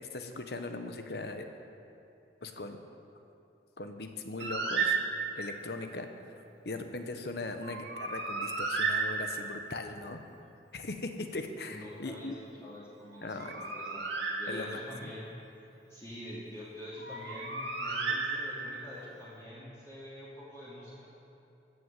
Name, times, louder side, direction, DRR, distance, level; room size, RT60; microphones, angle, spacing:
voice 1, 0.1-1.5 2.4-2.8 3.8-5.0 5.3-6.1 6.6-10.2 10.7-12.4 13.2-13.6 14.5-15.1, left 2 dB, 60° left, 6 dB, 0.9 m, -39 dB
Bird, 4.4-5.6 7.6-9.7 13.1-15.0 17.0-18.9, right 4 dB, 80° right, 1.9 m, -33 dB
voice 2, 11.7-15.3 15.9-21.1, left 1 dB, 15° left, -9 dB, 2.6 m, -46 dB
16.5 x 6.5 x 7.5 m, 2.7 s
head